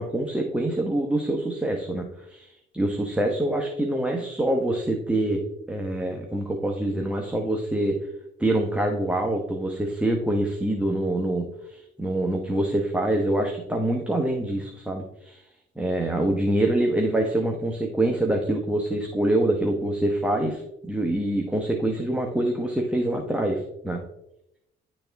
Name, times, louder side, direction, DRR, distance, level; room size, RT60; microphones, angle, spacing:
voice 1, 0.0-5.4 5.7-8.0 8.4-15.4 15.8-24.0, right 1 dB, 5° right, 1 dB, 1.0 m, -25 dB
10.5 x 4.2 x 3.4 m, 0.82 s
cardioid pair, 90°, 20 cm